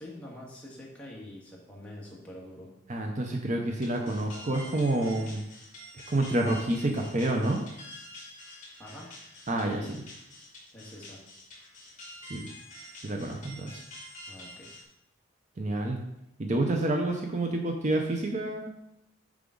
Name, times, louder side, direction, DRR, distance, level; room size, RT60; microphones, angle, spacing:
voice 1, 0.0-2.7 8.8-9.1 9.6-9.9 10.7-11.2 14.3-14.8, left 1 dB, 5° left, -5 dB, 1.6 m, -45 dB
voice 2, 2.9-5.4 6.1-7.6 9.5-10.0 12.3-12.5 13.0-13.8 15.6-16.0 16.4-18.7, right 1 dB, 40° right, 2 dB, 0.6 m, -28 dB
sound 1, 3.8-14.8, left 1 dB, 40° left, 2.1 m, -47 dB
6.9 x 5.0 x 3.8 m, 0.83 s
head